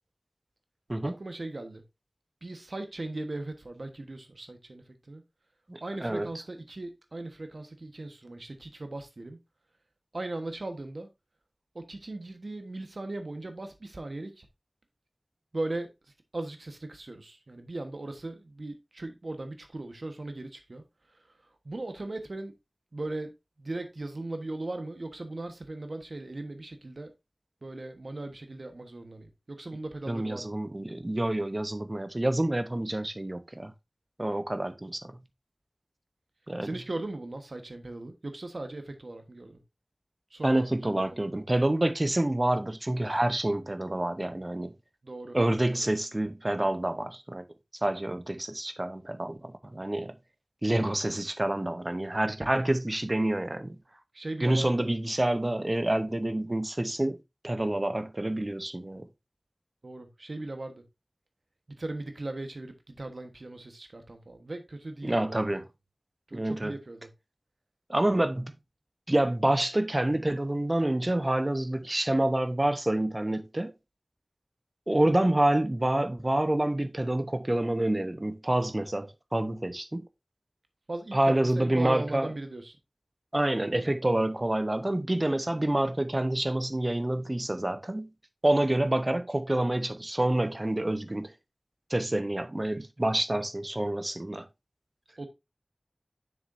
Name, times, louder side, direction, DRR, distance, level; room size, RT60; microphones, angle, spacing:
voice 1, 1.0-1.8 2.4-5.2 5.8-9.4 10.1-11.1 11.7-14.5 15.5-15.9 16.3-21.4 21.6-22.5 22.9-27.1 27.6-30.6 36.6-39.6 40.3-41.3 45.0-45.4 45.7-45.8 54.1-54.9 59.8-60.8 61.7-65.6 66.3-67.1 80.9-82.8 95.2-95.3, right 2 dB, 80° right, 1.2 m, -38 dB
voice 2, 5.7-6.3 30.1-33.7 34.2-35.0 36.5-36.7 40.4-44.7 45.3-47.4 47.8-50.1 50.6-53.8 54.4-57.2 57.4-59.1 65.0-65.6 66.3-66.7 67.9-68.5 69.1-73.7 74.9-80.0 81.1-82.3 83.3-88.1 88.4-91.3 91.9-94.5, right 1 dB, 40° right, 0.8 m, -27 dB
7.2 x 6.3 x 2.6 m
wide cardioid pair, 45°, 0 cm